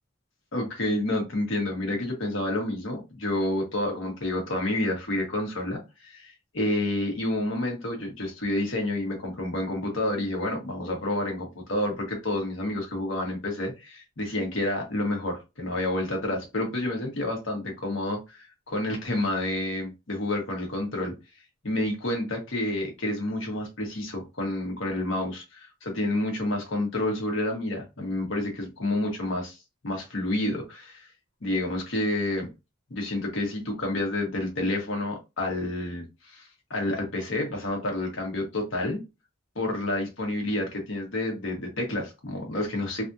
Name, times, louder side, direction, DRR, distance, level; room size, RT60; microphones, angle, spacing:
voice 1, 0.5-21.1 21.6-29.6 29.8-31.1 31.4-32.5 32.9-39.0 39.5-43.1, left 1 dB, 70° left, 1.4 m, -29 dB
3.4 x 2.5 x 2.7 m
head